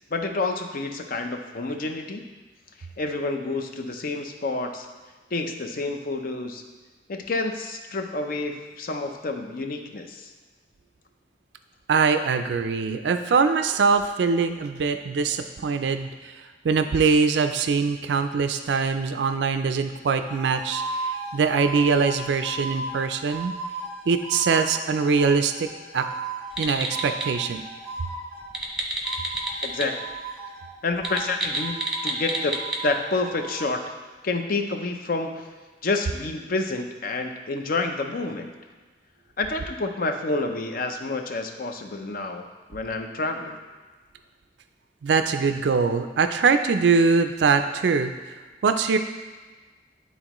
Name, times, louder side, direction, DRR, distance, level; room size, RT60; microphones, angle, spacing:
voice 1, 0.1-2.3 3.0-4.9 5.3-6.6 7.1-10.3 29.6-30.0 30.8-33.8 34.2-35.5 35.8-38.5 39.4-43.6, left 3 dB, 55° left, 5 dB, 0.6 m, -29 dB
voice 2, 11.9-23.6 24.1-25.7 25.9-26.1 26.6-27.6 45.0-48.3 48.6-49.0, right 5 dB, 75° right, 8 dB, 0.4 m, -23 dB
sound 1, 20.3-28.6 29.0-30.7 31.0-33.7, right 2 dB, 20° left, 1.9 m, -36 dB
sound 2, 26.5-27.3 28.4-29.9 30.1-30.2 30.9-32.8, right 2 dB, 5° right, 0.8 m, -29 dB
11.0 x 4.1 x 3.0 m, 1.3 s
head